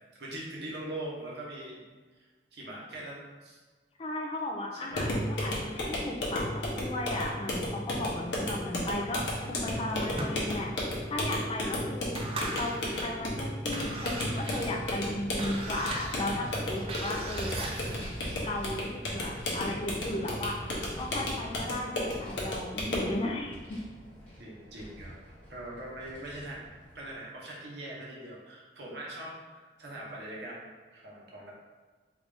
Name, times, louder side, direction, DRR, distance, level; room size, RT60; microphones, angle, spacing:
voice 1, 0.2-1.8 2.5-3.6 4.7-5.1 11.6-11.7 24.4-25.2 25.5-26.7 26.9-31.5, right 1 dB, 70° right, -5 dB, 1.0 m, -42 dB
voice 2, 4.0-6.5 6.8-9.2 9.5-12.2 12.5-17.7 18.4-20.6 21.0-23.8, left 1 dB, 30° left, 0 dB, 0.4 m, -35 dB
sound 1, 4.9-23.2, left 1 dB, 85° left, 0.9 m, -33 dB
sound 2, 9.3-10.9 11.4-11.5 11.9-13.2 13.6-18.2, right 2 dB, 35° right, 0.4 m, -39 dB
Vehicle, 13.9-27.1, equal, 5° left, 0.9 m, -46 dB
3.5 x 2.5 x 3.4 m, 1.4 s
head